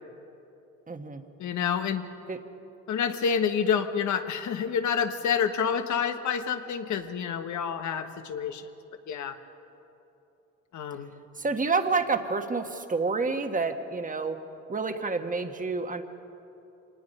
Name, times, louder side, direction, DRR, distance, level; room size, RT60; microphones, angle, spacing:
voice 1, 0.9-1.2 2.3-2.4 11.4-14.4 14.7-16.0, right 4 dB, 25° right, 7 dB, 1.4 m, -28 dB
voice 2, 1.4-2.0 2.9-8.7 9.1-9.4 10.7-11.1, left 7 dB, 70° left, 8 dB, 1.3 m, -28 dB
25.0 x 19.5 x 5.5 m, 3.0 s
cardioid pair, 90°, 30 cm